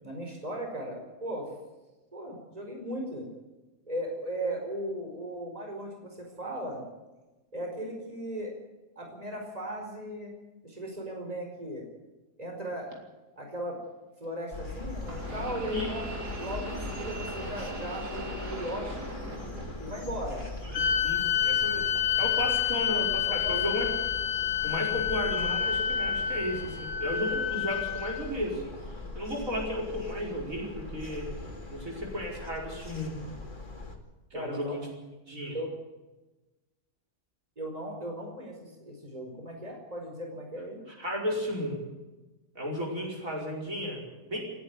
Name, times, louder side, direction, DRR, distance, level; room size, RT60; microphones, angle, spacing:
voice 1, 0.0-1.5 2.1-3.3 3.9-6.8 7.5-8.5 8.9-10.3 10.6-11.8 12.4-12.9 13.4-13.8 14.2-19.1 19.8-20.4 22.5-22.6 23.2-23.9 34.3-34.8 35.5-35.7 37.6-40.8, right 1 dB, 25° right, 1 dB, 5.1 m, -37 dB
sound 1, 12.9-13.0 15.0-20.1 20.4-21.2 22.0-22.1 23.1-23.2, right 2 dB, 80° right, 3.8 m, -40 dB
sound 2, 14.5-34.0, left 2 dB, 30° left, 2.7 m, -41 dB
voice 2, 20.6-21.9 22.2-23.9 24.6-28.7 29.2-31.3 31.7-33.2 34.3-34.9 35.3-35.6 41.0-41.8 42.6-44.4, equal, 55° right, -2 dB, 5.4 m, -34 dB
sound 3, 20.7-28.2, left 9 dB, 50° left, 2.3 m, -28 dB
29.0 x 10.0 x 9.7 m, 1.1 s
omnidirectional pair, 1.7 m